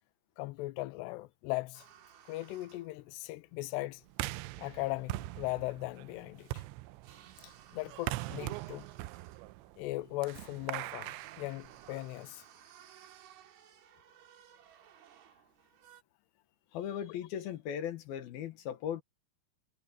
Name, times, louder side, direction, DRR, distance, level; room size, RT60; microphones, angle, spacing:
voice 1, 0.4-1.9 2.3-4.0 4.6-6.6 7.4-8.9 9.8-12.4 17.1-17.2, left 20 dB, 80° left, 2.6 m, -38 dB
sound 1, 1.7-16.0, right 9 dB, 60° right, 3.5 m, -60 dB
sound 2, 4.1-12.2, right 18 dB, 85° right, 2.6 m, -42 dB
voice 2, 16.7-19.0, left 9 dB, 65° left, 2.7 m, -38 dB
omnidirectional pair, 5.7 m